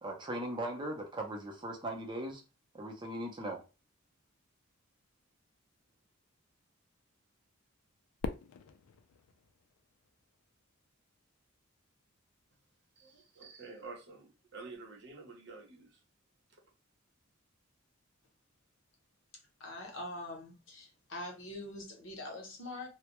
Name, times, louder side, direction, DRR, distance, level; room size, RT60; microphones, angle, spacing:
voice 1, 0.0-2.4 2.7-3.6, right 1 dB, 20° right, 0.5 m, -39 dB
Fireworks, 8.2-10.5, left 5 dB, 85° left, 0.3 m, -43 dB
voice 2, 13.0-16.0, right 3 dB, 55° right, 0.7 m, -49 dB
voice 3, 19.6-22.9, left 1 dB, 60° left, 0.8 m, -43 dB
2.2 x 2.0 x 2.9 m
head